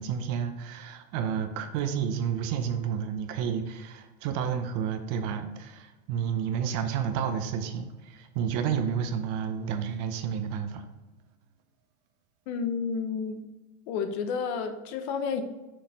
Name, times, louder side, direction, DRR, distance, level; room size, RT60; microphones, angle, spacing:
voice 1, 0.0-10.8, right 7 dB, 45° right, 7 dB, 0.7 m, -30 dB
voice 2, 12.5-13.4 13.9-15.4, left 6 dB, 50° left, 8 dB, 0.8 m, -31 dB
6.5 x 4.0 x 3.9 m, 1.2 s
supercardioid pair, 135°, 43 cm